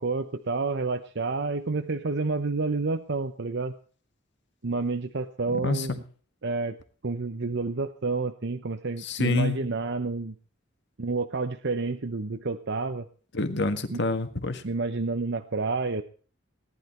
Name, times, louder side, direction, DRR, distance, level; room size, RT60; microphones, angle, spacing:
voice 1, 0.0-3.7 4.6-6.0 6.4-6.8 7.0-10.3 11.0-13.1 13.9-14.0 14.6-16.0, right 3 dB, 60° right, 8 dB, 0.9 m, -29 dB
voice 2, 9.0-9.6 13.3-14.6, left 2 dB, 60° left, 8 dB, 1.7 m, -27 dB
18.0 x 11.5 x 4.5 m, 0.40 s
head